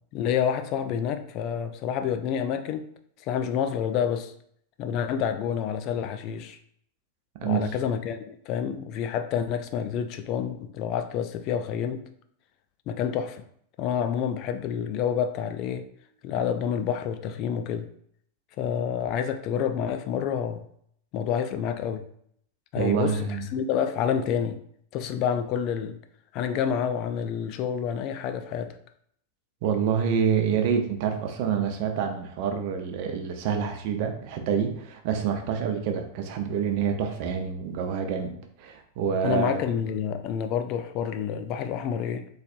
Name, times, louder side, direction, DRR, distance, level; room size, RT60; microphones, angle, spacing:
voice 1, 0.1-2.9 3.2-4.3 4.8-6.6 7.4-12.0 12.9-13.4 13.8-15.9 16.2-17.9 18.6-20.7 21.1-22.0 22.7-23.3 23.5-24.6 24.9-26.0 26.3-28.8 39.2-42.3, left 8 dB, 40° left, 8 dB, 0.3 m, -28 dB
voice 2, 22.8-23.5 29.6-39.6, right 7 dB, 45° right, 5 dB, 0.6 m, -27 dB
4.1 x 3.2 x 2.5 m, 0.65 s
figure-of-eight pair, 90°, 0 cm